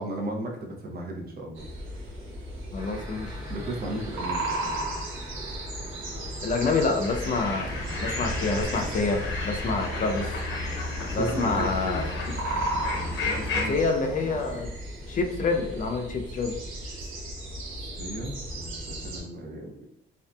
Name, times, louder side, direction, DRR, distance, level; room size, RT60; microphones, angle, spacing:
voice 1, 0.0-1.7 3.5-4.7 11.1-12.1 13.0-13.7 14.1-14.4 18.0-18.8 19.1-19.9, right 1 dB, 50° right, 1 dB, 0.7 m, -35 dB
sound 1, 1.5-19.2, right 1 dB, 80° right, 0.8 m, -36 dB
voice 2, 2.7-3.4 6.4-10.3 11.1-12.1 13.7-14.7 15.1-16.6, left 3 dB, 40° left, 3 dB, 0.5 m, -27 dB
sound 2, 2.8-14.6, equal, 15° right, 0.7 m, -45 dB
sound 3, 7.0-13.6, left 2 dB, 75° left, 0.7 m, -32 dB
2.6 x 2.4 x 2.2 m, 0.72 s
cardioid pair, 90°, 20 cm